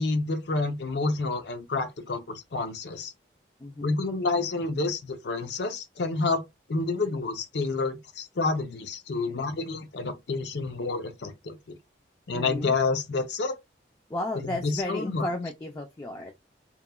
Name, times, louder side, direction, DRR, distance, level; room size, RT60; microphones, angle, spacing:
voice 1, 0.0-3.1 3.8-6.4 6.7-11.8 12.3-13.6 14.4-15.3, left 3 dB, 65° left, 0.5 m, -29 dB
voice 2, 3.6-4.0 12.3-12.7 14.1-16.3, left 1 dB, 20° left, 0.3 m, -33 dB
2.9 x 2.2 x 2.2 m
head